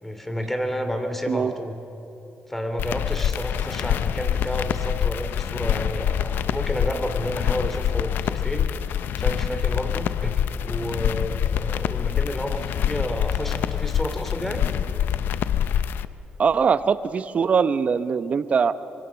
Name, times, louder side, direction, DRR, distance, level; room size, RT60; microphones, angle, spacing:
voice 1, 0.0-1.8 2.5-8.7 9.2-14.6, equal, 5° left, 6 dB, 2.9 m, -30 dB
sound 1, 2.8-16.0, left 9 dB, 75° left, 0.7 m, -25 dB
voice 2, 16.4-18.7, right 6 dB, 40° right, 13 dB, 0.8 m, -21 dB
25.5 x 23.5 x 7.1 m, 3.0 s
cardioid pair, 100°, 3 cm